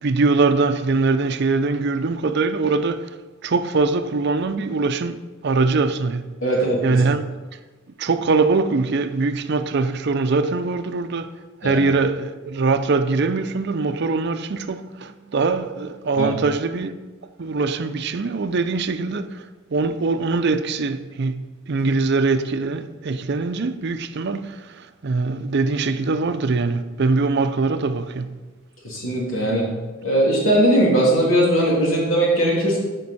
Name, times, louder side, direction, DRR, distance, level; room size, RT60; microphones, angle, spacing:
voice 1, 0.0-3.1 3.4-6.2 6.8-7.2 8.0-11.3 11.6-16.9 17.4-28.4, right 3 dB, 55° right, 0.5 m, -22 dB
voice 2, 6.4-6.8 11.6-11.8 16.2-16.3 28.8-29.7 30.0-32.8, right 1 dB, 75° left, 3.0 m, -19 dB
13.0 x 5.3 x 4.2 m
head